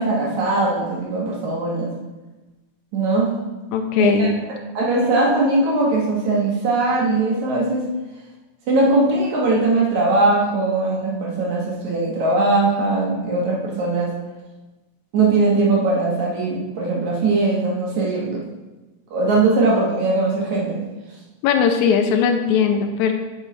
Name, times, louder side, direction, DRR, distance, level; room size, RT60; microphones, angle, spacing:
voice 1, 0.0-1.9 2.9-3.4 4.0-4.3 4.8-7.9 8.7-14.1 15.1-18.4 19.1-20.8, right 2 dB, 60° right, -3 dB, 2.3 m, -20 dB
voice 2, 3.7-4.4 21.4-23.1, left 6 dB, 80° left, 5 dB, 1.7 m, -18 dB
9.7 x 5.6 x 4.5 m, 1.1 s
omnidirectional pair, 4.3 m